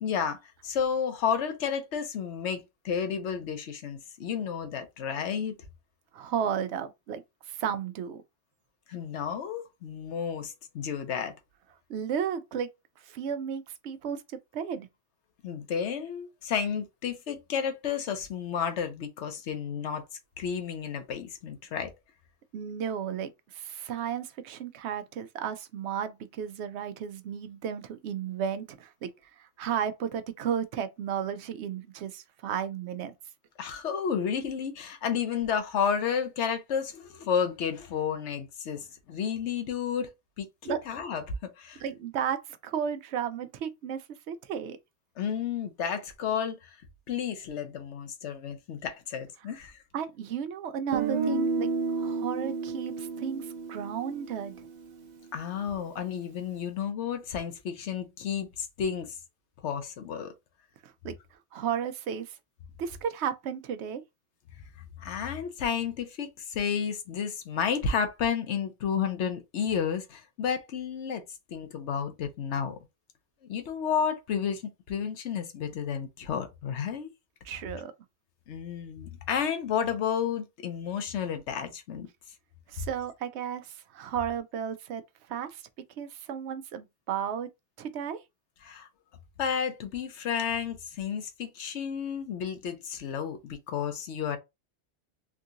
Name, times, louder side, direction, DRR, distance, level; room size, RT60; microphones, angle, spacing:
voice 1, 0.0-5.5 8.9-11.3 15.4-20.0 20.4-21.9 33.6-40.1 40.4-41.8 45.2-46.8 47.1-49.8 55.3-59.2 59.6-60.3 65.0-71.2 71.5-72.8 73.4-74.6 74.9-77.1 78.5-82.1 88.6-88.9 89.4-94.4, left 7 dB, 80° left, 1.0 m, -31 dB
voice 2, 6.1-7.2 7.5-8.2 11.9-12.7 13.0-14.9 22.5-29.1 29.4-33.1 40.6-40.8 41.8-44.8 49.9-51.7 52.0-54.7 60.8-61.1 61.5-62.4 62.8-64.0 77.4-77.9 82.7-85.0 85.3-85.6 86.0-87.5 87.8-88.2, right 8 dB, 75° right, 0.8 m, -33 dB
Guitar, 50.9-54.9, right 4 dB, 50° right, 0.6 m, -31 dB
3.6 x 2.8 x 2.5 m
omnidirectional pair, 1.2 m